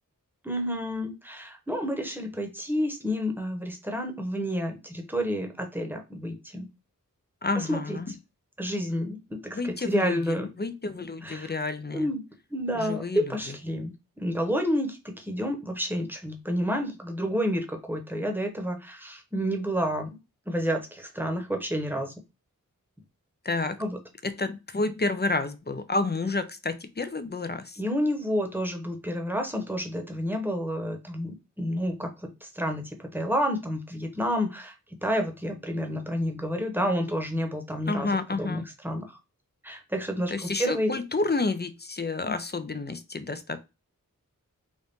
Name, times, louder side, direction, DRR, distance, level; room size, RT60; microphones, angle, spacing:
voice 1, 0.4-6.7 7.5-8.0 8.6-10.5 11.2-11.6 11.9-12.2 12.5-13.9 14.2-20.1 20.5-22.1 23.8-24.0 27.8-34.7 35.0-39.2 39.6-41.0 42.2-42.3, equal, 5° right, 1.0 m, -30 dB
voice 2, 7.4-8.1 9.5-12.1 12.7-13.6 23.4-23.8 24.2-27.8 37.9-38.6 40.3-43.6, left 3 dB, 30° left, 0.5 m, -30 dB
4.1 x 2.5 x 3.5 m
wide cardioid pair, 45°, 33 cm